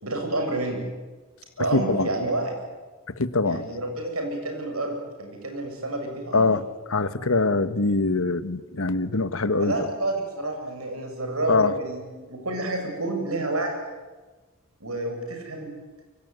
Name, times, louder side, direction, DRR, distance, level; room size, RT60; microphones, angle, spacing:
voice 1, 0.0-0.8 1.6-2.6 3.4-6.5 9.6-13.8 14.8-15.7, right 2 dB, 85° right, 4 dB, 7.5 m, -29 dB
voice 2, 1.6-2.1 3.2-3.6 6.3-6.6 6.9-9.7 11.5-11.7, left 3 dB, 70° left, 14 dB, 1.4 m, -23 dB
25.0 x 23.5 x 9.4 m, 1.3 s
head